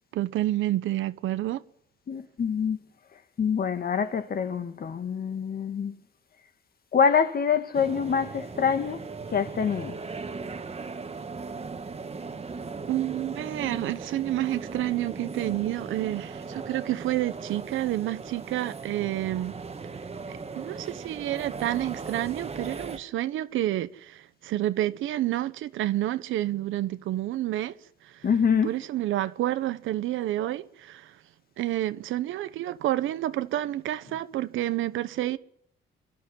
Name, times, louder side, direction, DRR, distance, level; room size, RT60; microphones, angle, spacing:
voice 1, 0.1-1.6 12.9-19.5 20.6-27.7 28.6-31.1 31.6-35.4, right 14 dB, 85° right, 1.1 m, -29 dB
voice 2, 2.1-2.8 3.4-5.9 6.9-9.0 9.3-10.0 28.2-28.7, left 6 dB, 50° left, 1.7 m, -25 dB
sound 1, 7.7-23.0, right 4 dB, 30° right, 1.7 m, -38 dB
28.0 x 12.0 x 9.9 m
cardioid pair, 90°, 20 cm